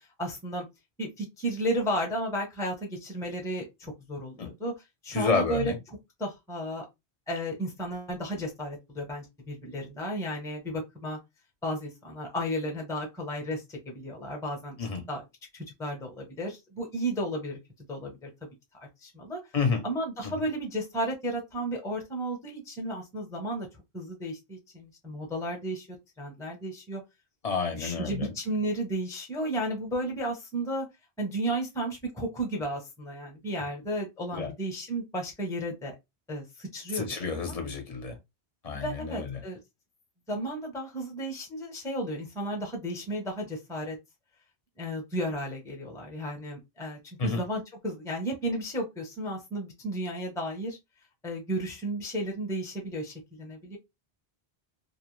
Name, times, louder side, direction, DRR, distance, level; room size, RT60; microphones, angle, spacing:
voice 1, 0.2-0.6 1.0-4.7 5.0-5.7 6.2-6.9 7.3-11.2 11.6-14.8 15.1-15.2 15.5-17.6 17.9-18.3 19.0-19.4 19.8-23.7 23.9-25.9 26.2-27.0 27.8-30.9 31.2-35.9 36.3-37.0 38.7-39.6 40.3-44.0 44.8-50.8 51.2-53.8, right 1 dB, 5° left, 0.6 m, -33 dB
voice 2, 5.1-5.8 14.8-15.1 19.5-19.8 20.2-20.3 27.4-28.3 34.3-34.5 36.9-38.2 38.6-39.4 47.2-47.4, left 4 dB, 40° left, 0.7 m, -30 dB
2.4 x 2.1 x 3.0 m
omnidirectional pair, 1.0 m